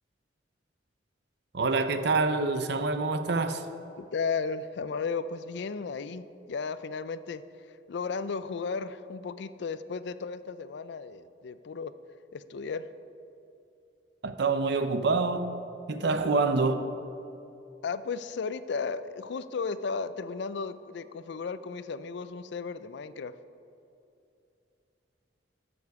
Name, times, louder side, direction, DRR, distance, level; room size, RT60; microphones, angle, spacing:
voice 1, 1.5-3.6 14.2-15.6 15.9-16.7, right 3 dB, 65° right, 0.7 m, -26 dB
voice 2, 4.0-11.9 12.3-12.9 16.2-16.3 17.8-23.3, left 5 dB, 70° left, 0.4 m, -34 dB
13.5 x 7.0 x 4.8 m
head